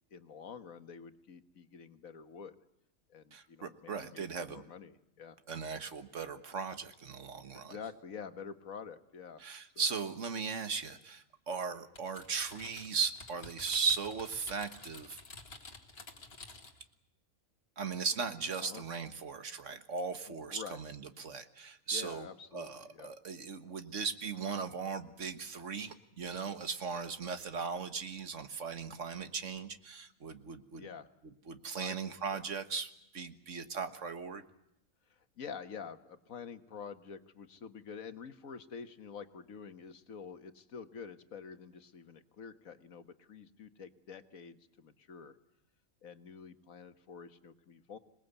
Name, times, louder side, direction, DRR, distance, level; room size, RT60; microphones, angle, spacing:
voice 1, 0.1-2.6 3.1-5.4 7.5-9.4 18.6-18.8 20.3-20.8 21.9-23.1 30.8-31.1 31.8-32.0 32.3-32.4 35.1-45.4 46.0-48.0, left 6 dB, 80° left, 10 dB, 1.7 m, -48 dB
voice 2, 3.3-4.6 5.5-7.8 9.4-15.2 17.8-22.3 22.5-30.8 31.5-34.4, right 5 dB, 60° right, 10 dB, 1.7 m, -38 dB
Typing, 12.0-16.9, left 3 dB, 45° left, 2.3 m, -51 dB
26.5 x 19.5 x 8.1 m, 0.82 s
omnidirectional pair, 1.4 m